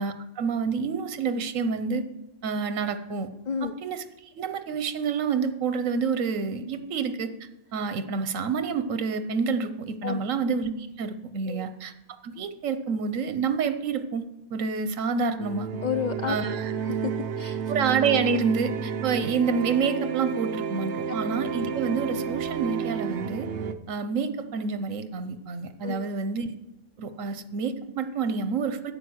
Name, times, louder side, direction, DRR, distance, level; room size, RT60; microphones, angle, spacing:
voice 1, 0.0-2.0 2.4-3.3 3.8-7.3 7.7-11.9 12.2-14.2 14.5-15.7 16.3-16.7 17.7-23.5 23.9-26.5 27.0-28.9, right 5 dB, 80° right, 10 dB, 1.2 m, -28 dB
sound 1, 15.4-23.7, right 6 dB, 65° right, 0.9 m, -31 dB
voice 2, 15.8-17.6 25.8-26.1, left 7 dB, 70° left, 8 dB, 0.4 m, -31 dB
10.5 x 8.3 x 6.3 m, 0.92 s
omnidirectional pair, 1.3 m